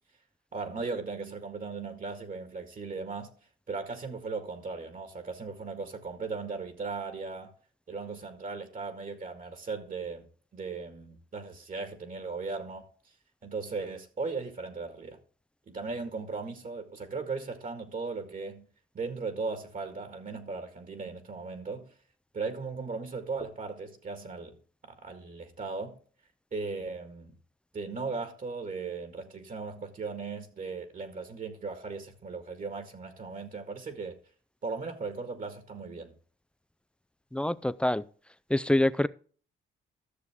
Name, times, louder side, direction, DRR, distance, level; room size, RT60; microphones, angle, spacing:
voice 1, 0.5-3.3 3.7-7.5 7.9-10.3 10.5-12.9 13.4-15.2 15.7-18.7 18.9-21.9 22.3-24.6 24.8-26.0 26.5-27.4 27.7-34.2 34.6-36.2, right 4 dB, 45° right, 1.8 m, -37 dB
voice 2, 37.3-38.0 38.5-39.1, left 1 dB, 5° left, 0.4 m, -25 dB
13.5 x 6.7 x 3.5 m
cardioid pair, 90°, 20 cm